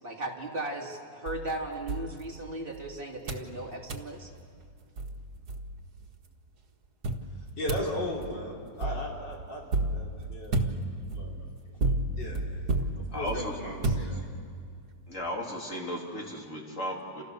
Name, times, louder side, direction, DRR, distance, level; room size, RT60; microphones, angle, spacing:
voice 1, 0.0-4.3, right 2 dB, 30° right, -1 dB, 3.3 m, -36 dB
sound 1, 1.3-2.8 3.3-3.5 3.9-4.1 4.7-4.8 5.0-6.1 7.0-14.6, right 2 dB, 65° right, 2.1 m, -32 dB
voice 2, 7.6-9.6 9.9-10.6 11.1-11.4 12.1-12.4 13.1-14.3, left 1 dB, 90° left, -2 dB, 5.2 m, -36 dB
voice 3, 13.1-13.6 15.1-17.2, left 1 dB, 45° left, -1 dB, 3.5 m, -35 dB
29.5 x 28.0 x 6.9 m, 2.1 s
omnidirectional pair, 1.9 m